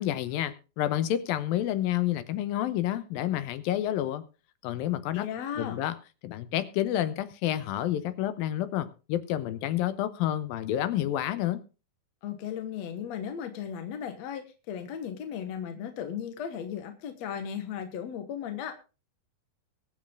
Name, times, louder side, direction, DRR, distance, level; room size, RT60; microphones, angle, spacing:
voice 1, 0.0-4.2 4.6-5.3 5.6-6.0 6.2-11.6, left 12 dB, 85° left, 13 dB, 2.6 m, -29 dB
voice 2, 5.1-5.8 12.2-18.7, left 8 dB, 60° left, 7 dB, 2.0 m, -36 dB
22.5 x 7.5 x 3.7 m, 0.32 s
omnidirectional pair, 4.2 m